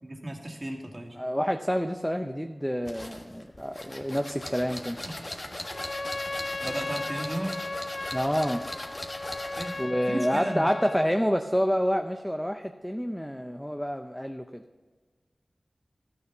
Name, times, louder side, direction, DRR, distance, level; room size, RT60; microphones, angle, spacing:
voice 1, 0.0-1.2 5.1-5.2 6.6-7.6 9.6-9.8 10.1-10.7, right 1 dB, 35° right, 1 dB, 2.1 m, -34 dB
voice 2, 1.2-5.0 8.1-8.7 9.8-14.6, equal, 5° left, 6 dB, 0.6 m, -28 dB
sound 1, 2.9-9.9, left 1 dB, 40° left, 1.4 m, -39 dB
Trumpet, 5.6-11.1, left 2 dB, 55° left, 0.4 m, -36 dB
13.0 x 6.6 x 6.0 m, 1.4 s
cardioid pair, 45°, 0 cm